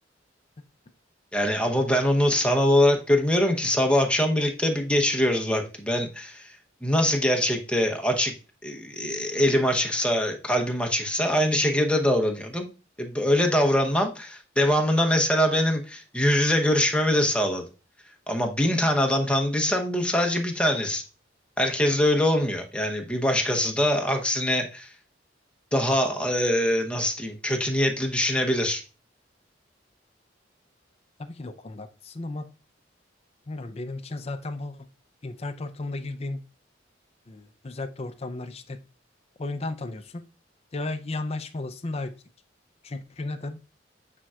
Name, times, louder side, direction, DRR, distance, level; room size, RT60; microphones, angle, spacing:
voice 1, 1.3-8.3 8.6-12.7 13.0-17.6 18.3-21.0 21.6-24.9 25.7-28.8, left 1 dB, 5° left, 3 dB, 0.9 m, -23 dB
voice 2, 31.2-32.5 33.5-34.9 35.2-36.4 37.3-38.8 39.4-40.2 40.7-42.1 42.8-43.6, left 2 dB, 35° left, 9 dB, 0.5 m, -34 dB
9.0 x 4.4 x 2.4 m, 0.33 s
head